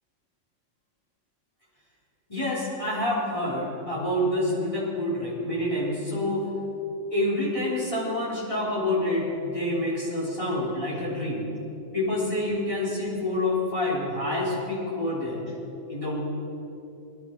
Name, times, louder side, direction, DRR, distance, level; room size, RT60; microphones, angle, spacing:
voice 1, 2.3-6.5 7.1-11.4 11.9-15.4 15.9-16.2, left 1 dB, 25° left, -7 dB, 4.1 m, -27 dB
21.0 x 11.5 x 4.7 m, 2.9 s
omnidirectional pair, 1.3 m